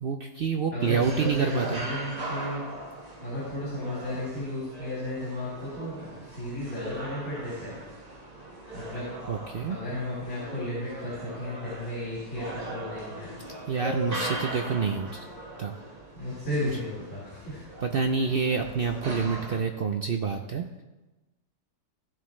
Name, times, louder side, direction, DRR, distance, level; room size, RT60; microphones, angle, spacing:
voice 1, 0.0-1.8 9.3-9.8 13.7-15.2 15.6-15.7 16.6-16.7 17.8-20.7, right 5 dB, 75° right, 4 dB, 0.5 m, -27 dB
voice 2, 0.7-2.6 3.2-7.8 8.7-9.1 9.7-13.3 16.1-17.6, left 1 dB, 55° left, -10 dB, 4.9 m, -34 dB
sound 1, 0.8-19.6, right 1 dB, 25° right, 1.6 m, -40 dB
16.5 x 7.6 x 3.2 m, 1.1 s
omnidirectional pair, 1.7 m